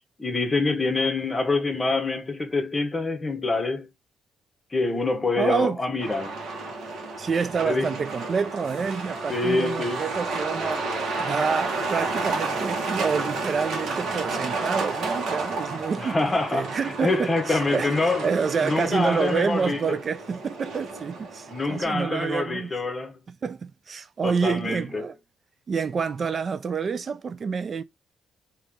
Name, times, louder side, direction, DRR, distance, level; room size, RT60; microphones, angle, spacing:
voice 1, 0.2-3.9 4.7-6.4 7.6-7.9 9.3-10.1 16.0-18.3 18.6-20.0 21.5-23.2 24.2-25.0, left 3 dB, 25° left, 1.2 m, -26 dB
voice 2, 5.4-5.8 7.2-10.9 11.2-22.7 23.4-25.1 25.7-27.8, right 5 dB, 45° right, 0.3 m, -28 dB
Truck, 6.0-21.8, right 3 dB, 70° right, 1.4 m, -31 dB
3.4 x 2.9 x 3.6 m
cardioid pair, 90°, 0 cm